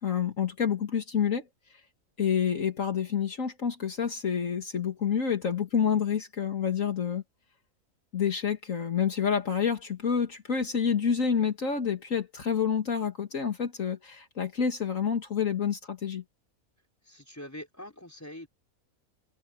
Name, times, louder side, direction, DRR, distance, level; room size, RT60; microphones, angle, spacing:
voice 1, 0.0-1.4 2.2-7.2 8.1-16.2, left 7 dB, 65° left, 2.1 m, -28 dB
voice 2, 17.1-18.5, left 1 dB, 10° left, 5.3 m, -43 dB
omnidirectional pair, 1.5 m